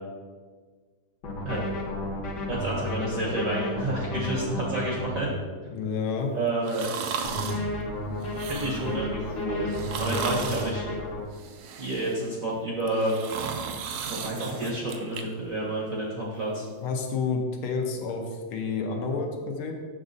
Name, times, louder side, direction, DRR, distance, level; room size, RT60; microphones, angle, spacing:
sound 1, 1.2-5.2 7.2-11.2, left 1 dB, 55° left, 1.5 m, -32 dB
voice 1, 2.5-5.3 6.3-6.9 8.4-10.8 11.8-13.1 14.0-16.7, right 1 dB, 55° right, -3 dB, 1.0 m, -30 dB
voice 2, 5.7-6.3 16.8-19.7, left 5 dB, 75° left, 2 dB, 1.6 m, -29 dB
sound 2, 6.6-7.6 8.2-9.0 9.7-10.7 11.3-12.3 12.8-15.2 15.6-15.7, right 6 dB, 75° right, 1.2 m, -35 dB
7.1 x 6.1 x 2.6 m, 1.5 s
omnidirectional pair, 2.4 m